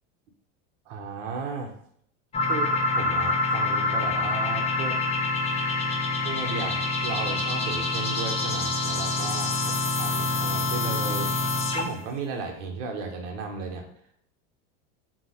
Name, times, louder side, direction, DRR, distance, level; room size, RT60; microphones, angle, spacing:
voice 1, 0.9-1.7 2.5-5.0 6.2-11.3 11.7-13.9, right 4 dB, 75° right, 2 dB, 0.8 m, -35 dB
sound 1, 2.3-12.0, left 3 dB, 20° left, 0.4 m, -26 dB
2.8 x 2.0 x 2.7 m, 0.67 s
supercardioid pair, 115°, 36 cm